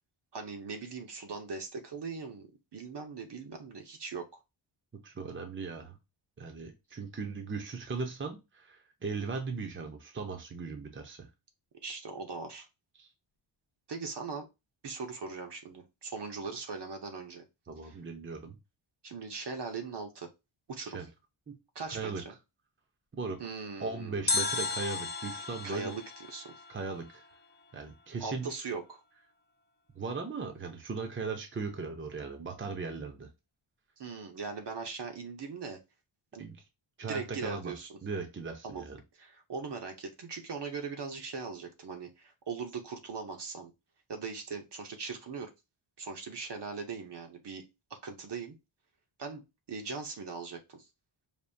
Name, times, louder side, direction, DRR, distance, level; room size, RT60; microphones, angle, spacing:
voice 1, 0.3-4.4 11.8-12.7 13.9-14.5 14.8-17.4 17.8-18.0 19.0-20.3 20.7-21.0 21.7-22.3 23.4-24.3 25.6-26.5 28.2-29.0 34.0-35.8 36.3-36.5 37.1-38.0 38.6-38.8 39.2-43.7 44.1-45.5 46.0-47.6 47.9-48.6 49.2-50.9, right 4 dB, 55° right, 4 dB, 0.9 m, -40 dB
voice 2, 5.0-6.0 6.4-11.3 13.0-13.1 17.7-18.6 20.9-21.1 21.5-21.6 21.9-22.2 23.1-23.4 23.8-25.9 26.7-27.2 27.7-28.5 30.0-33.3 36.4-36.6 37.0-37.7 38.0-39.0, right 4 dB, 25° right, 5 dB, 0.7 m, -38 dB
sound 1, 24.3-27.4 27.6-27.7, left 3 dB, 25° left, 0.3 m, -34 dB
5.2 x 2.6 x 2.7 m, 0.24 s
wide cardioid pair, 170°, 50 cm